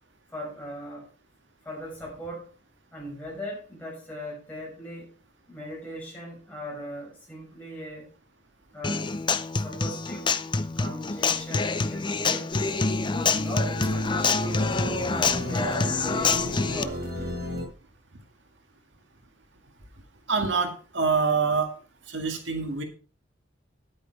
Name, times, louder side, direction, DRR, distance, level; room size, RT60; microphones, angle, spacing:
voice 1, 0.3-1.1 1.6-2.5 2.9-5.1 5.5-8.1 8.7-9.1 9.6-10.3 10.8-12.6 13.1-14.7 15.1-17.1, equal, 10° left, -4 dB, 6.4 m, -38 dB
Human voice / Acoustic guitar, 8.8-16.8, left 4 dB, 25° left, 0.5 m, -26 dB
sound 1, 12.5-17.6, equal, 55° right, 5.5 m, -35 dB
voice 2, 20.3-21.7 22.1-22.8, right 5 dB, 75° right, 5 dB, 2.0 m, -25 dB
10.0 x 8.7 x 4.6 m, 0.34 s
head